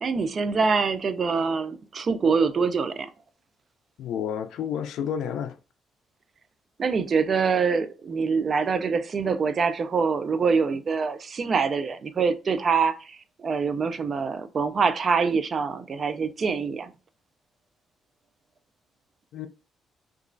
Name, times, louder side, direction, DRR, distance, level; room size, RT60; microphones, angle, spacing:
voice 1, 0.0-3.1 6.8-16.9, right 5 dB, 45° right, 0.4 m, -25 dB
voice 2, 4.0-5.6 19.3-19.5, left 8 dB, 80° left, 0.3 m, -30 dB
2.9 x 2.4 x 2.5 m
cardioid pair, 90°, 0 cm